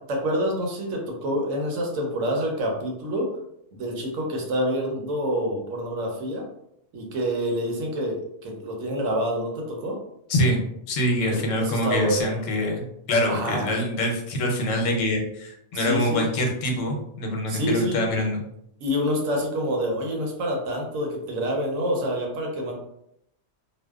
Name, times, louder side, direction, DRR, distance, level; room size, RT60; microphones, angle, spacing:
voice 1, 0.1-3.3 3.7-6.4 6.9-10.0 11.3-12.4 13.3-13.7 15.7-16.2 17.5-18.0 18.8-22.7, equal, 90° right, 0 dB, 1.1 m, -27 dB
voice 2, 10.3-18.4, left 1 dB, 90° left, 1 dB, 1.0 m, -25 dB
2.6 x 2.1 x 2.3 m, 0.75 s
omnidirectional pair, 1.3 m